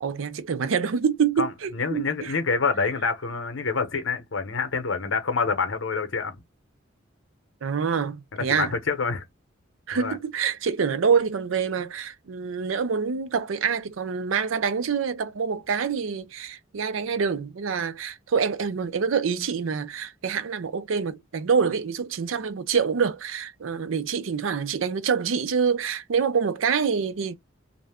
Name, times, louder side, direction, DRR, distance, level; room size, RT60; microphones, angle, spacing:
voice 1, 0.0-2.4 7.6-8.7 9.9-27.3, right 6 dB, 85° right, 0.5 m, -26 dB
voice 2, 1.4-6.4 8.3-9.2 9.9-10.2, left 4 dB, 75° left, 0.8 m, -27 dB
2.5 x 2.1 x 3.4 m
head